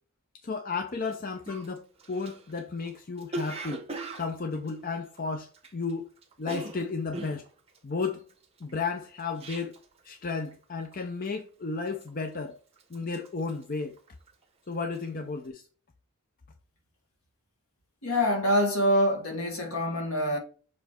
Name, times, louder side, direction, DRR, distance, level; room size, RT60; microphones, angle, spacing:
voice 1, 0.4-3.8 4.2-6.1 6.4-7.5 7.8-8.2 8.6-9.7 10.0-12.6 12.9-14.0 14.7-15.6, left 4 dB, 40° left, 0.5 m, -33 dB
Cough, 1.0-1.1 1.5-5.9 6.2-10.0 10.3-10.6 10.9-11.4 11.9-12.5 12.8-14.4 14.7-15.1, right 2 dB, 25° right, 1.1 m, -40 dB
voice 2, 18.0-20.4, equal, 75° left, 1.8 m, -25 dB
7.1 x 3.2 x 4.5 m
head